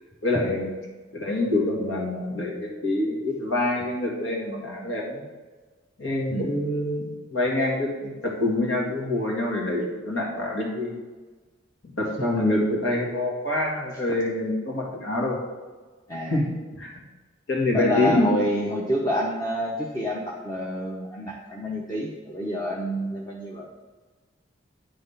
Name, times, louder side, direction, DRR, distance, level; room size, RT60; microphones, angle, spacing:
voice 1, 0.2-0.7 1.1-5.2 6.0-11.0 12.0-15.4 16.3-16.4 16.8-17.0 17.5-18.3, left 2 dB, 85° left, -2 dB, 1.9 m, -26 dB
voice 2, 16.1-16.4 17.7-23.7, equal, 20° left, -2 dB, 0.7 m, -28 dB
8.8 x 3.5 x 5.6 m, 1.3 s
head